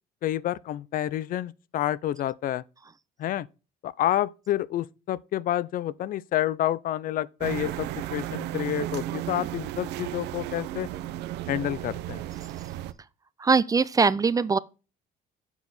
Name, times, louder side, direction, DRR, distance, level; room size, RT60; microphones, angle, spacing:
voice 1, 0.2-2.6 3.2-3.5 3.8-10.9 11.5-12.2, left 12 dB, 55° left, 0.4 m, -29 dB
sound 1, 7.4-12.9, right 13 dB, 85° right, 0.6 m, -34 dB
voice 2, 13.4-14.6, right 5 dB, 20° right, 0.4 m, -21 dB
7.1 x 6.3 x 4.0 m
cardioid pair, 110°, 17 cm